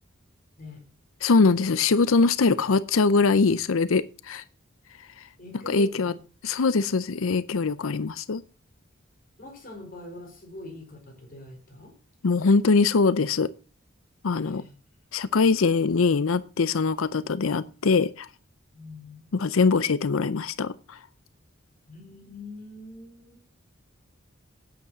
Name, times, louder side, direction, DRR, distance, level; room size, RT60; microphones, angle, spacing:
voice 1, 1.2-4.4 5.7-6.1 6.4-8.4 12.2-13.5 14.2-14.6 15.1-18.3 19.3-21.0, left 4 dB, 85° left, 15 dB, 0.6 m, -22 dB
voice 2, 5.4-6.1 9.4-11.9 14.4-14.7 18.7-19.3 21.9-23.6, left 1 dB, 45° left, 1 dB, 4.4 m, -43 dB
9.3 x 8.3 x 6.2 m, 0.36 s
head